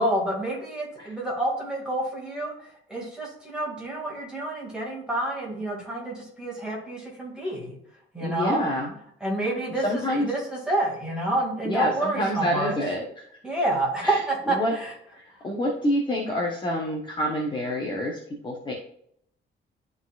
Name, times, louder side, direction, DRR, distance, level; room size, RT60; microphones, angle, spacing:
voice 1, 0.0-7.7 8.1-8.6 9.2-12.7 13.4-14.9, right 1 dB, 5° right, -4 dB, 2.5 m, -28 dB
voice 2, 8.2-8.9 9.8-10.3 11.6-13.0 14.0-14.2 14.5-14.7 15.1-18.2 18.4-18.7, equal, 25° left, -2 dB, 1.1 m, -27 dB
12.0 x 4.1 x 2.5 m, 0.68 s
cardioid pair, 170°, 20 cm